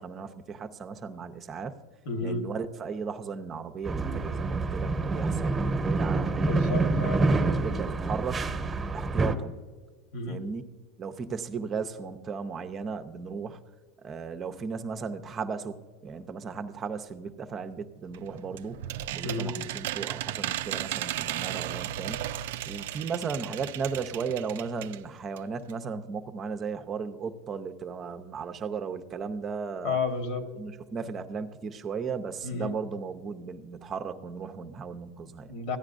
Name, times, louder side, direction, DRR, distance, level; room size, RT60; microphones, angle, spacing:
voice 1, 0.0-1.7 2.2-6.9 7.3-9.7 10.3-10.6 11.0-13.6 14.0-22.3 22.6-30.0 30.5-35.5, right 5 dB, 25° right, 7 dB, 0.7 m, -36 dB
voice 2, 2.0-2.5 6.4-7.2 10.1-10.4 19.2-19.5 29.8-30.5 32.4-32.7 35.5-35.8, left 3 dB, 55° left, 6 dB, 1.5 m, -31 dB
sound 1, 3.8-9.4, right 3 dB, 10° right, 1.1 m, -27 dB
sound 2, 18.1-25.0 25.4-25.5 25.7-25.8, right 13 dB, 75° right, 0.3 m, -35 dB
15.0 x 9.6 x 2.6 m, 1.5 s
supercardioid pair, 130°, 0 cm